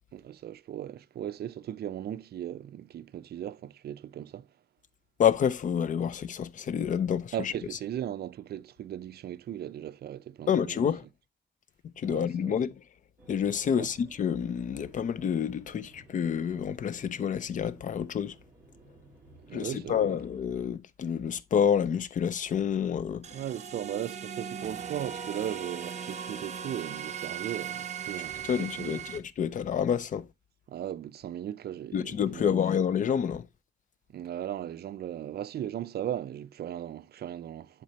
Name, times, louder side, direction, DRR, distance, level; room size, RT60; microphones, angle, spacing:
voice 1, 0.1-4.5 7.3-10.9 12.1-12.6 13.7-13.9 19.5-20.2 23.3-29.0 30.7-32.6 34.1-37.8, right 11 dB, 55° right, 0.5 m, -37 dB
voice 2, 5.2-7.5 10.5-11.1 12.0-12.8 13.3-18.4 19.5-23.3 28.4-30.3 31.9-33.5, left 8 dB, 40° left, 0.5 m, -28 dB
sound 1, 13.2-20.7, right 2 dB, 10° right, 2.5 m, -56 dB
sound 2, 23.2-29.2, right 7 dB, 35° right, 1.0 m, -38 dB
10.5 x 4.2 x 2.8 m
cardioid pair, 145°, 20 cm